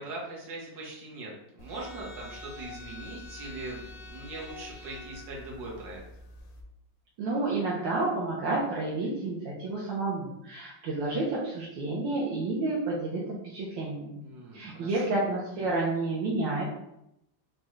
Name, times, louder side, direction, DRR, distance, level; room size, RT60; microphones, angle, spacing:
voice 1, 0.0-6.0 14.2-15.1, right 2 dB, 55° right, -3 dB, 1.4 m, -41 dB
sound 1, 1.6-6.6, left 2 dB, 70° left, 0.9 m, -46 dB
voice 2, 7.2-14.2 14.5-16.6, right 2 dB, 75° right, -5 dB, 1.3 m, -30 dB
5.0 x 2.2 x 3.0 m, 0.83 s
omnidirectional pair, 2.2 m